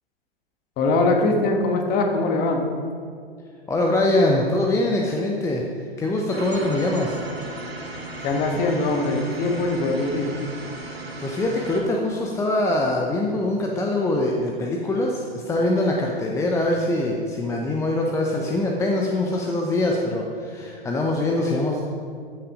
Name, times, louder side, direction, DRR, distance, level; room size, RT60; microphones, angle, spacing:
voice 1, 0.8-2.6 8.2-10.3, left 2 dB, 30° left, 3 dB, 1.4 m, -22 dB
voice 2, 3.7-5.6 6.0-7.2 10.9-21.8, left 1 dB, 10° left, 0 dB, 0.7 m, -23 dB
sound 1, 6.3-11.8, right 2 dB, 75° right, 2.3 m, -36 dB
14.0 x 6.3 x 5.0 m, 2.2 s
figure-of-eight pair, 105°, 30 cm